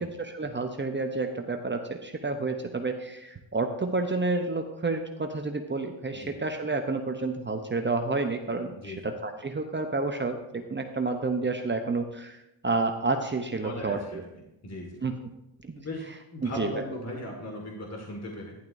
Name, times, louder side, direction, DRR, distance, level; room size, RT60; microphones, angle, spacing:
voice 1, 0.0-12.4 12.6-14.2 15.0-15.1 15.6-15.8 16.4-16.7, right 3 dB, 25° right, 5 dB, 0.8 m, -30 dB
voice 2, 8.8-9.1 13.6-14.2 14.6-15.0 15.8-16.0 16.3-18.6, left 1 dB, 30° left, 0 dB, 2.1 m, -38 dB
11.5 x 11.0 x 2.7 m, 0.89 s
cardioid pair, 85°, 49 cm